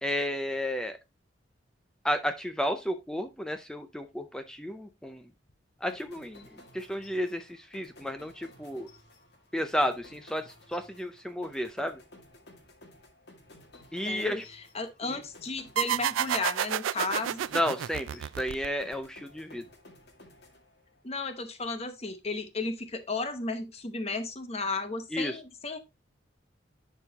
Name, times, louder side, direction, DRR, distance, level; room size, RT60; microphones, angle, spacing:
voice 1, 0.0-1.0 2.0-5.3 5.8-8.9 9.5-12.0 13.9-14.4 15.1-15.2 17.5-19.7 25.1-25.4, equal, 5° left, 8 dB, 0.4 m, -32 dB
sound 1, 5.9-21.2, left 1 dB, 55° left, 2.0 m, -55 dB
voice 2, 14.0-14.4 14.7-17.5 21.0-25.8, left 3 dB, 30° left, 9 dB, 0.9 m, -34 dB
sound 2, 15.8-19.1, right 10 dB, 85° right, 0.3 m, -30 dB
10.5 x 4.6 x 2.8 m, 0.23 s
head